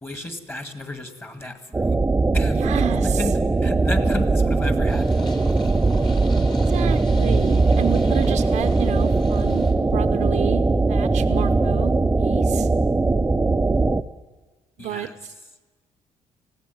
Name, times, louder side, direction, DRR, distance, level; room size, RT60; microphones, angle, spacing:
voice 1, 0.0-2.0 2.3-2.7 2.9-5.3 14.8-15.1, left 1 dB, 20° left, 8 dB, 2.0 m, -33 dB
sound 1, 1.7-14.0, right 3 dB, 15° right, 0.6 m, -20 dB
voice 2, 2.5-3.2 6.7-10.6 10.9-12.7 14.8-15.3, right 12 dB, 85° right, 6 dB, 0.8 m, -31 dB
Purr, 4.9-9.7, left 3 dB, 35° left, 3.2 m, -42 dB
19.0 x 15.5 x 9.2 m, 1.3 s
cardioid pair, 120°, 12 cm